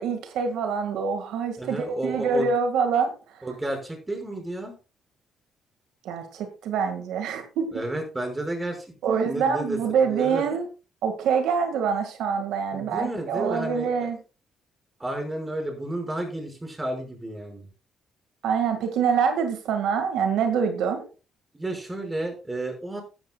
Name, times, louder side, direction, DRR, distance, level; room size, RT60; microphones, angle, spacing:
voice 1, 0.0-3.4 6.0-7.7 9.0-10.7 11.0-14.2 18.4-21.0, right 6 dB, 85° right, 6 dB, 1.9 m, -25 dB
voice 2, 1.6-2.5 3.4-4.7 7.7-9.8 10.0-10.4 12.7-14.1 15.0-17.7 21.6-23.0, right 1 dB, 15° right, 3 dB, 5.5 m, -32 dB
15.0 x 11.0 x 2.3 m, 0.32 s
cardioid pair, 90°, 0 cm